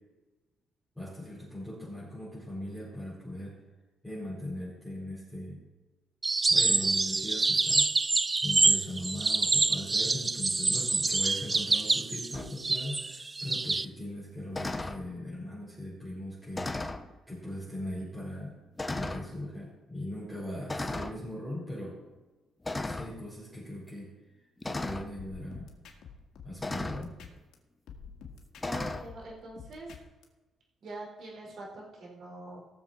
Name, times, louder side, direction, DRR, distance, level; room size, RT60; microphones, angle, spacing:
voice 1, 0.9-3.6 4.0-5.6 6.2-7.9 8.4-18.6 18.9-22.0 22.8-25.7 26.4-27.2, left 1 dB, ahead, -8 dB, 4.8 m, -39 dB
sound 1, 6.2-13.9, right 3 dB, 25° right, 0.4 m, -26 dB
sound 2, 12.3-12.5 14.5-15.0 16.5-17.1 17.9-18.0 18.8-19.3 20.7-21.2 22.6-23.1 24.6-25.1 26.6-27.1 28.6-29.1, left 2 dB, 15° left, 0.8 m, -35 dB
sound 3, 25.2-27.5 27.9-30.2, left 6 dB, 75° left, 1.9 m, -49 dB
voice 2, 28.6-29.9 30.8-32.6, right 2 dB, 60° right, -2 dB, 4.8 m, -44 dB
17.5 x 7.2 x 4.4 m, 1.2 s
cardioid pair, 90°, 0 cm